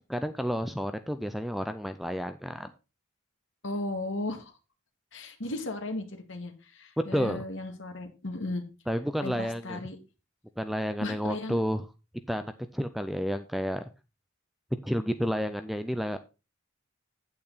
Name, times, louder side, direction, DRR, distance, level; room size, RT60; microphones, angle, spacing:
voice 1, 0.1-2.7 7.0-7.4 8.9-9.8 10.6-11.8 12.3-13.9 14.8-16.2, equal, ahead, 10 dB, 0.5 m, -30 dB
voice 2, 3.6-4.5 5.1-8.6 9.2-10.0 11.0-11.6, left 2 dB, 60° left, 5 dB, 2.0 m, -35 dB
8.8 x 8.6 x 4.0 m, 0.29 s
head